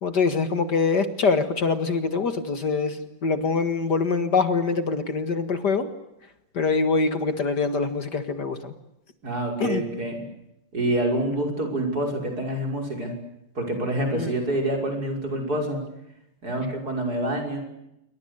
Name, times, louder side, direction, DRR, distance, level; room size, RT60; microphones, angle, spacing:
voice 1, 0.0-5.9 6.6-8.7 9.6-9.8 14.0-14.4, left 4 dB, 55° left, 10 dB, 2.3 m, -24 dB
voice 2, 9.2-10.2 10.7-13.1 13.5-15.8 16.4-17.6, right 1 dB, 50° right, 3 dB, 6.5 m, -27 dB
27.5 x 24.0 x 8.3 m, 0.86 s
omnidirectional pair, 2.2 m